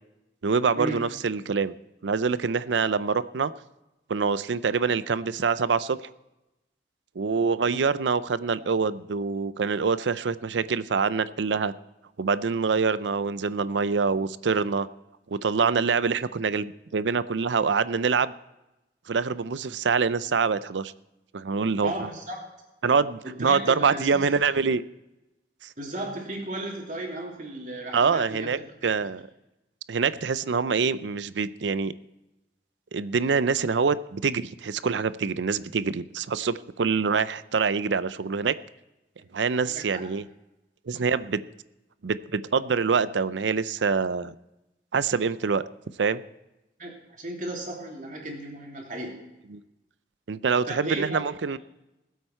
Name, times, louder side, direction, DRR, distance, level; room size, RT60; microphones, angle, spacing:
voice 1, 0.4-1.7 2.0-3.5 4.1-6.1 7.2-11.7 12.2-14.9 15.3-18.3 19.1-20.9 21.3-21.9 22.8-24.8 25.6-25.7 27.9-28.6 28.8-29.2 29.9-31.9 32.9-38.5 39.3-40.2 40.9-41.4 42.0-44.3 44.9-45.6 46.0-46.2 49.5-49.6 50.3-51.6, right 5 dB, 90° right, 16 dB, 0.5 m, -25 dB
voice 2, 21.8-22.4 23.2-24.3 25.8-28.9 39.6-39.9 46.8-49.2 50.6-51.2, right 1 dB, 45° right, 0 dB, 2.9 m, -35 dB
19.5 x 8.2 x 4.4 m, 0.98 s
head